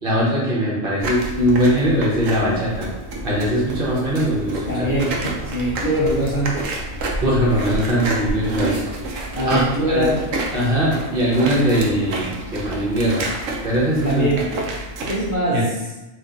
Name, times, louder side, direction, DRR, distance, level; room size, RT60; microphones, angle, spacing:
voice 1, 0.0-2.9 3.2-4.9 7.2-8.8 9.5-9.6 9.9-10.1 10.5-13.3 13.6-14.3 15.5-15.6, equal, 45° right, -6 dB, 1.0 m, -20 dB
sound 1, 1.0-15.3, right 2 dB, 75° right, 1.0 m, -29 dB
voice 2, 4.7-6.8 9.3-10.2 14.0-14.5 15.0-15.7, right 1 dB, 50° left, -8 dB, 0.6 m, -22 dB
2.8 x 2.5 x 3.7 m, 1.1 s
omnidirectional pair, 1.4 m